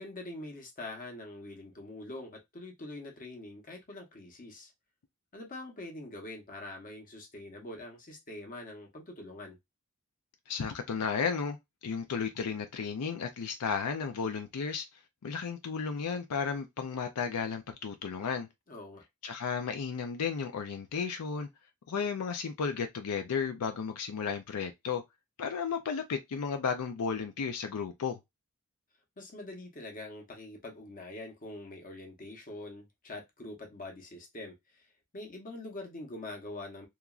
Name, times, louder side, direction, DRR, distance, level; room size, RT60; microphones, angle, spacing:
voice 1, 0.0-4.7 5.3-9.6 18.7-19.0 29.2-36.9, left 2 dB, 40° left, 0.9 m, -44 dB
voice 2, 10.5-11.6 11.8-14.8 15.2-18.5 19.2-21.5 21.9-25.0 25.4-28.2, left 6 dB, 90° left, 0.4 m, -33 dB
2.9 x 2.4 x 2.3 m
head